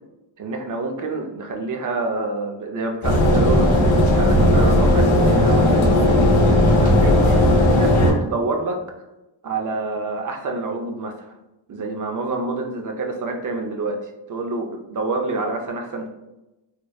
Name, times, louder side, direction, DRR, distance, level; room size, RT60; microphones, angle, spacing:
voice 1, 0.4-7.2 7.7-8.8 9.4-11.3 11.7-16.1, right 3 dB, 40° right, 3 dB, 0.4 m, -27 dB
sound 1, 3.0-8.1, left 1 dB, 75° left, 0.7 m, -16 dB
2.8 x 2.0 x 2.2 m, 0.98 s
cardioid pair, 70°, 48 cm